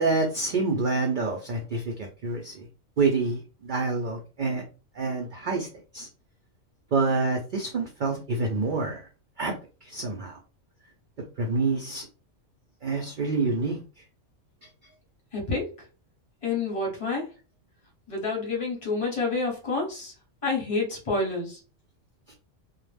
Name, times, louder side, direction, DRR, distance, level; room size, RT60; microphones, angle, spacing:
voice 1, 0.0-2.6 3.0-4.6 5.0-5.7 5.9-6.1 6.9-9.0 9.4-9.6 9.8-10.4 11.4-12.1 12.8-13.8, right 3 dB, 80° right, 2 dB, 0.4 m, -27 dB
voice 2, 15.3-15.7 16.4-17.2 18.1-20.1 20.4-21.6, left 3 dB, 30° left, 0 dB, 0.8 m, -28 dB
2.3 x 2.0 x 3.2 m, 0.33 s
omnidirectional pair, 1.4 m